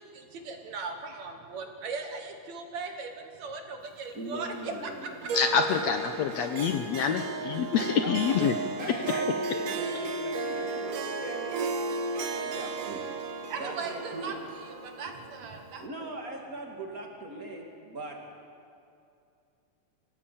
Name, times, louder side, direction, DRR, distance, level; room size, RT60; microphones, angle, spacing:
voice 1, 0.0-5.3 13.5-14.4 14.6-16.4, right 4 dB, 65° right, 4 dB, 2.5 m, -39 dB
voice 2, 4.1-6.2 7.1-7.2 7.9-8.4 8.8-11.6 12.3-13.0 13.6-14.4 15.8-18.2, right 1 dB, 30° right, 1 dB, 2.8 m, -40 dB
voice 3, 5.3-8.5, left 7 dB, 70° left, 6 dB, 1.9 m, -26 dB
Harp, 5.3-15.9, right 4 dB, 80° right, 2.9 m, -34 dB
25.0 x 16.0 x 8.5 m, 2.5 s
omnidirectional pair, 3.7 m